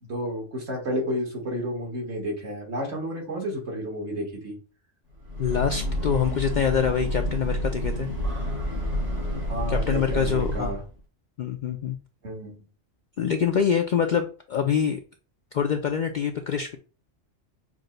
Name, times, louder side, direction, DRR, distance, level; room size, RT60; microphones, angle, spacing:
voice 1, 0.0-4.6 9.5-10.8 12.2-12.6, equal, 65° right, 0 dB, 1.8 m, -31 dB
Breathing / Train, 5.1-10.9, equal, 90° right, 3.4 m, -29 dB
voice 2, 5.4-8.1 9.7-10.8 11.4-12.0 13.2-15.0 15.5-16.8, left 7 dB, 60° left, 5 dB, 0.5 m, -25 dB
6.2 x 2.2 x 3.8 m, 0.36 s
omnidirectional pair, 1.2 m